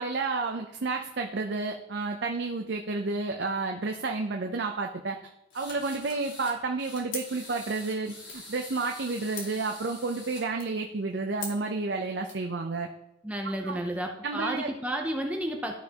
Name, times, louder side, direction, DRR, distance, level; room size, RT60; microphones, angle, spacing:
voice 1, 0.0-5.2 5.5-12.9 13.4-13.8 14.2-14.7, right 3 dB, 60° right, 3 dB, 0.5 m, -31 dB
sound 1, 5.5-6.5 6.8-10.4, left 2 dB, 65° left, 3.0 m, -46 dB
sound 2, 7.1-12.5, left 3 dB, 85° left, 2.6 m, -45 dB
voice 2, 13.2-15.7, right 1 dB, 5° right, 2 dB, 0.5 m, -32 dB
12.0 x 5.7 x 2.9 m, 0.88 s
head